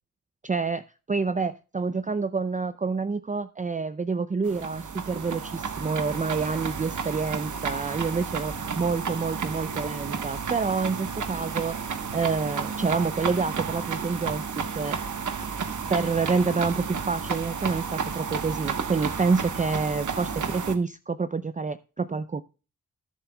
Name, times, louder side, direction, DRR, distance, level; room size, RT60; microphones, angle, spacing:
voice 1, 0.4-15.0 15.9-22.4, right 4 dB, 25° right, 12 dB, 0.5 m, -28 dB
sound 1, 4.4-20.7, right 6 dB, 65° right, 1.2 m, -32 dB
20.0 x 7.8 x 2.3 m, 0.35 s
cardioid pair, 55°, 32 cm